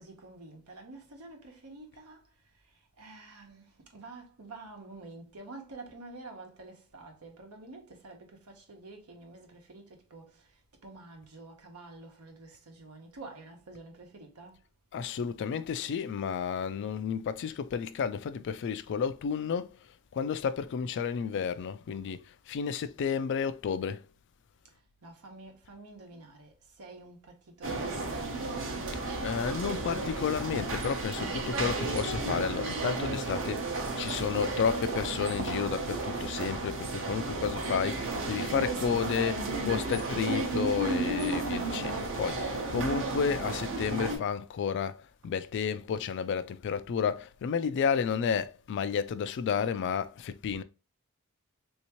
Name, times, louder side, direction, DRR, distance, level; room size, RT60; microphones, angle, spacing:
voice 1, 0.0-2.3 2.7-14.6 24.7-24.8 25.0-28.5, right 2 dB, 85° right, 1.0 m, -49 dB
voice 2, 14.9-19.8 20.1-24.0 28.9-50.6, left 6 dB, 55° left, 0.3 m, -32 dB
sound 1, 27.6-44.2, right 2 dB, 60° right, 0.8 m, -33 dB
3.4 x 2.8 x 2.9 m
head